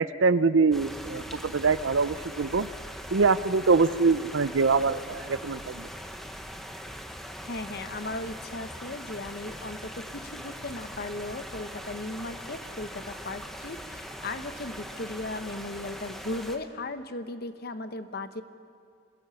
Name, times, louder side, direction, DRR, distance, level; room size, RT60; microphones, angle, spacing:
voice 1, 0.0-2.7 3.1-5.9, right 4 dB, 70° right, 15 dB, 0.6 m, -24 dB
sound 1, 0.7-16.6, equal, ahead, 1.1 m, -41 dB
voice 2, 7.4-18.4, left 2 dB, 50° left, 10 dB, 0.9 m, -37 dB
26.5 x 16.5 x 7.0 m, 2.3 s
head